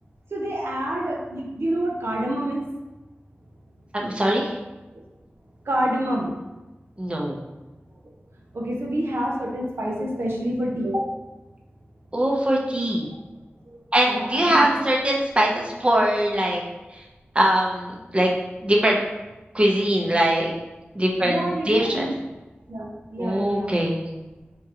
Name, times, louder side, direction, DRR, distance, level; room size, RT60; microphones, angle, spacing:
voice 1, 0.3-2.7 5.7-6.3 8.5-11.0 14.1-14.8 21.2-22.1 22.7-23.7, right 1 dB, 85° right, -1 dB, 0.7 m, -27 dB
voice 2, 3.9-4.6 7.0-7.4 12.1-13.1 13.9-16.6 16.9-17.0 17.3-18.3 18.6-19.0 19.5-20.5 20.9-22.1 23.2-24.0, right 1 dB, 30° right, -1 dB, 0.7 m, -22 dB
4.4 x 3.7 x 2.8 m, 1.1 s
wide cardioid pair, 65°, 4 cm